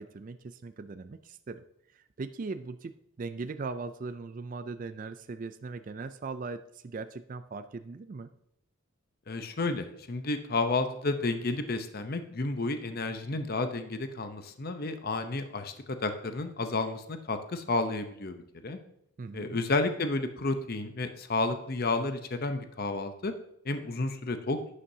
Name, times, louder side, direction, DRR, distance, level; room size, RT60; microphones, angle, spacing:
voice 1, 0.0-1.6 2.2-2.9 3.2-8.3 19.2-19.6, right 4 dB, 40° right, 10 dB, 0.3 m, -39 dB
voice 2, 9.3-18.8 19.3-23.3 23.6-24.6, left 3 dB, 45° left, 8 dB, 0.7 m, -31 dB
11.5 x 9.8 x 2.8 m, 0.77 s
head